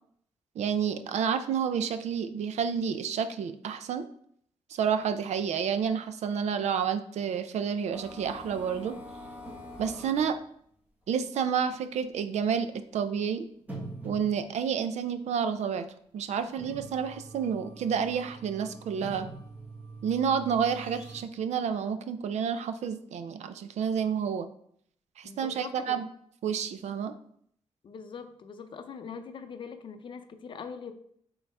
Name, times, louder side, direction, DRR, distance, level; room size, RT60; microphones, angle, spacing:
voice 1, 0.6-4.1 4.7-9.0 9.8-10.4 11.1-12.7 12.9-13.4 14.0-15.9 16.1-19.3 20.0-24.5 25.2-26.1 26.4-27.1, right 7 dB, 85° right, 10 dB, 0.6 m, -29 dB
sound 1, 7.9-10.3 11.2-11.3 11.7-11.8 12.7-12.8 13.6-14.7 16.2-21.2, right 1 dB, 15° right, 1.4 m, -44 dB
voice 2, 25.2-26.0 27.8-30.9, left 6 dB, 50° left, 8 dB, 0.6 m, -42 dB
8.9 x 4.0 x 3.4 m, 0.66 s
wide cardioid pair, 180°, 11 cm